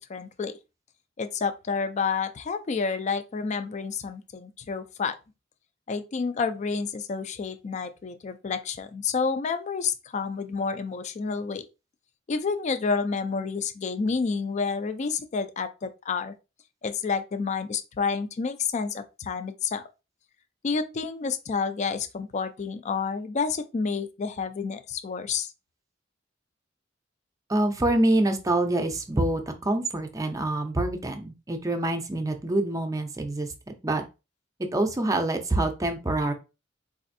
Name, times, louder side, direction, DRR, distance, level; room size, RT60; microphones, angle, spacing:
voice 1, 0.1-0.5 1.2-5.2 5.9-11.6 12.3-16.3 16.8-19.8 20.6-25.5, left 5 dB, 40° left, 0.4 m, -29 dB
voice 2, 27.5-33.5 33.8-34.0 34.7-36.3, right 2 dB, 20° right, 0.5 m, -26 dB
4.0 x 2.5 x 2.6 m
head